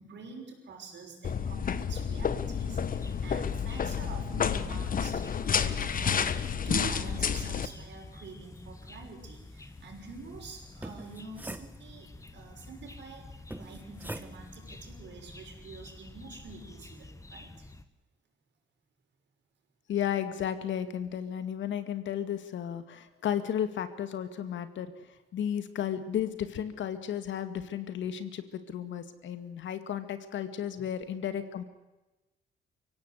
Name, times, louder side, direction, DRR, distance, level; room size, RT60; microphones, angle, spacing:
voice 1, 0.0-17.7 30.7-30.9, right 4 dB, 65° right, 3 dB, 6.3 m, -46 dB
sound 1, 1.2-7.7, left 7 dB, 45° left, 1.3 m, -30 dB
sound 2, 2.8-17.8, left 2 dB, 15° left, 1.6 m, -49 dB
sound 3, 10.6-12.3 13.5-14.6, right 1 dB, 10° right, 1.4 m, -43 dB
voice 2, 19.9-25.1 25.3-31.6, left 9 dB, 70° left, 10 dB, 2.2 m, -33 dB
24.0 x 17.0 x 8.1 m, 1.1 s
cardioid pair, 90°, 20 cm